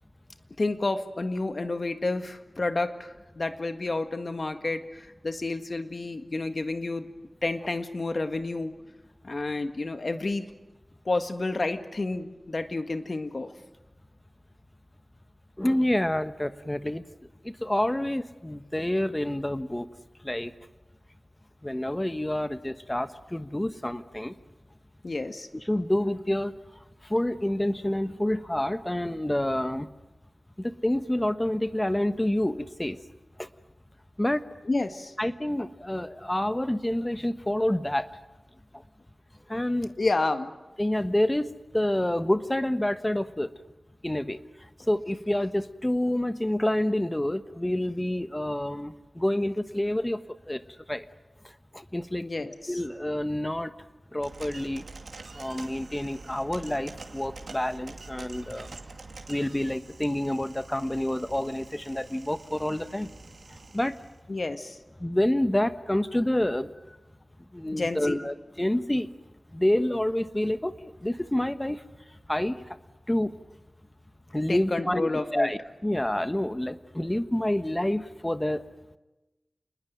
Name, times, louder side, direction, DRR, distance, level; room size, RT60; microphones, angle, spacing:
voice 1, 0.6-7.1 7.4-8.8 9.2-10.5 11.1-13.5 25.0-25.5 34.7-35.1 40.0-40.5 52.2-52.7 64.3-64.8 67.7-68.3 74.5-75.5, left 2 dB, 55° left, 8 dB, 1.7 m, -30 dB
voice 2, 15.6-17.0 17.4-19.9 20.2-20.5 21.6-24.3 25.5-26.6 27.0-29.9 30.6-33.0 33.4-33.5 34.2-34.4 35.2-38.1 39.5-39.9 40.8-43.5 44.0-44.4 44.9-50.2 50.5-50.6 50.9-51.1 51.7-53.7 54.1-54.8 55.3-58.7 59.3-63.1 63.7-64.0 65.0-66.7 67.5-69.1 69.5-71.8 72.3-72.8 73.1-73.3 74.3-78.6, left 1 dB, 15° left, 11 dB, 1.2 m, -28 dB
sound 1, 54.2-64.2, right 3 dB, 90° right, 2.5 m, -46 dB
28.0 x 20.5 x 9.4 m, 1.1 s
wide cardioid pair, 85°, 0 cm